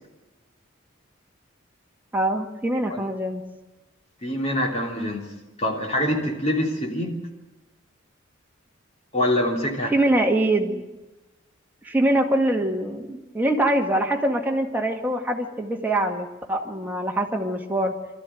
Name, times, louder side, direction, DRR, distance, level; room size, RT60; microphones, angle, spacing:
voice 1, 2.1-3.4 9.9-10.8 11.8-17.9, right 1 dB, 10° right, 1 dB, 1.9 m, -23 dB
voice 2, 4.2-5.3 5.6-7.2 9.1-9.9, left 1 dB, 35° left, 0 dB, 3.3 m, -25 dB
24.0 x 14.0 x 9.2 m, 1.1 s
head